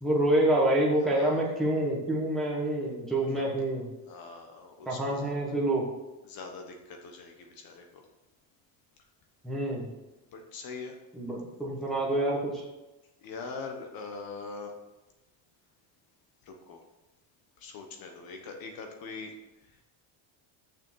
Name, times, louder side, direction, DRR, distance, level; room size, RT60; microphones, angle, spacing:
voice 1, 0.0-3.8 4.9-5.8 9.4-9.9 11.2-12.6, right 1 dB, ahead, -5 dB, 1.3 m, -27 dB
voice 2, 1.0-1.4 2.7-2.8 3.3-3.5 4.1-5.3 6.2-8.0 10.3-11.0 13.2-14.7 16.4-16.8 17.6-19.3 19.7-19.9, left 4 dB, 45° left, 3 dB, 1.2 m, -42 dB
6.7 x 6.5 x 6.2 m, 1.1 s
cardioid pair, 170°, 48 cm